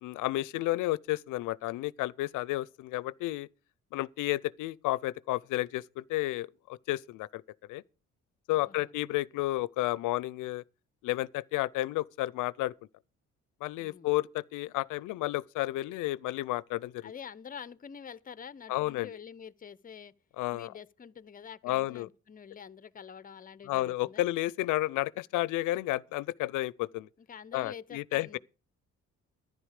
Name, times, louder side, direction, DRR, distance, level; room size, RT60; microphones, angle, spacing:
voice 1, 0.0-3.5 3.9-7.4 7.7-7.8 8.5-10.6 11.0-12.7 13.6-17.1 18.7-19.1 20.4-20.7 21.6-22.1 23.7-27.1 27.5-28.4, left 17 dB, 85° left, 0.5 m, -31 dB
voice 2, 8.6-8.9 13.8-14.1 17.0-20.1 20.5-24.3 27.2-28.4, left 7 dB, 30° left, 0.6 m, -47 dB
11.0 x 10.5 x 4.9 m
cardioid pair, 90°, 30 cm